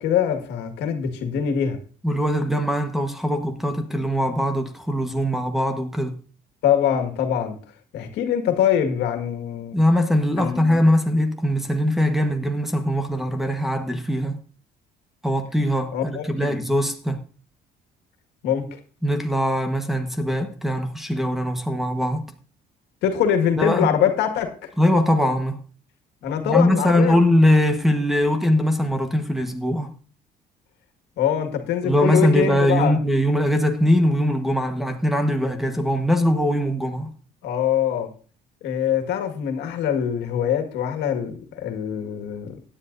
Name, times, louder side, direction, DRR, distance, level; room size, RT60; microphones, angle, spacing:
voice 1, 0.0-1.8 6.6-7.6 7.9-9.8 10.4-10.8 15.9-16.6 18.4-18.8 23.0-24.7 26.2-27.2 31.2-33.0 37.4-38.1 38.6-42.5, left 9 dB, 85° left, 1.9 m, -23 dB
voice 2, 2.0-6.2 9.7-14.4 15.2-17.2 19.0-22.2 23.6-23.9 24.8-25.6 26.4-29.9 31.8-37.1, equal, ahead, 1.3 m, -21 dB
16.5 x 10.0 x 2.7 m
cardioid pair, 110°, 17 cm